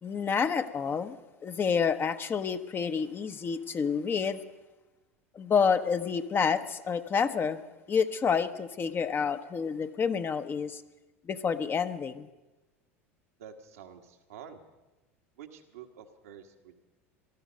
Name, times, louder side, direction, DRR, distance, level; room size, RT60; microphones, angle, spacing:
voice 1, 0.0-1.2 1.4-4.4 5.3-7.6 7.9-10.8 11.3-12.3, left 6 dB, 30° left, 9 dB, 0.9 m, -28 dB
voice 2, 13.4-14.6 15.4-16.8, right 8 dB, 75° right, 3 dB, 1.5 m, -48 dB
19.0 x 13.0 x 5.2 m, 1.1 s
hypercardioid pair, 80°, 8 cm